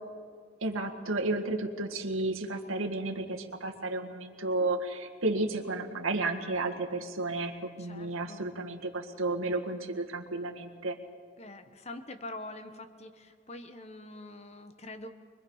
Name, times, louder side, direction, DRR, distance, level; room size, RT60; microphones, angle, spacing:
voice 1, 0.6-11.0, right 2 dB, 85° right, 2 dB, 1.8 m, -32 dB
voice 2, 7.8-8.4 11.4-15.1, left 2 dB, 30° left, 8 dB, 1.2 m, -44 dB
25.0 x 21.5 x 5.6 m, 2.2 s
head